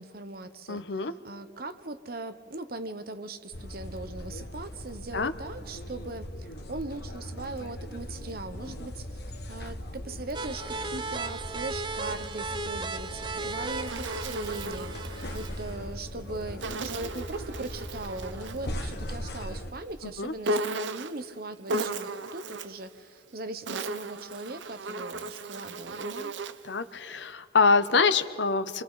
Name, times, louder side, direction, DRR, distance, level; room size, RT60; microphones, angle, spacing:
voice 1, 0.0-26.3, right 2 dB, 55° right, 11 dB, 1.0 m, -40 dB
voice 2, 0.7-1.1 5.1-5.3 20.0-20.3 26.6-28.8, left 4 dB, 80° left, 12 dB, 0.9 m, -25 dB
sound 1, 3.5-19.7, left 1 dB, 60° left, 1.5 m, -39 dB
sound 2, 10.3-15.7, right 3 dB, 25° right, 0.8 m, -36 dB
Insect, 13.4-15.5 16.6-18.7 20.4-21.2 21.7-22.8 23.4-26.7, right 2 dB, 90° right, 0.7 m, -35 dB
29.0 x 24.5 x 4.1 m, 2.1 s
head